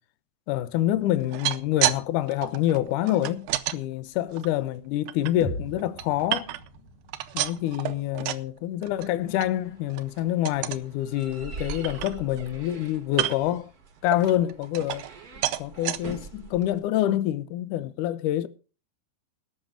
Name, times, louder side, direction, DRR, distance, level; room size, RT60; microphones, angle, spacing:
voice 1, 0.5-6.5 7.3-13.7 14.0-15.1 15.6-18.5, left 13 dB, 75° left, 2.0 m, -27 dB
sound 1, 1.2-2.0 2.3-3.8 4.3-5.3 5.8-6.8 7.1-8.5 8.8-9.1 9.4-9.5 9.9-10.1 10.5-10.9 11.3-11.4 11.7-12.5 13.1-13.6 14.1-15.2 15.4-16.0 16.6-16.7 17.0-17.1, right 14 dB, 75° right, 1.9 m, -30 dB
sound 2, 5.4-9.4, equal, 45° left, 2.0 m, -41 dB
sound 3, 9.2-16.8, right 4 dB, 45° right, 1.2 m, -44 dB
19.5 x 6.6 x 5.0 m
omnidirectional pair, 4.4 m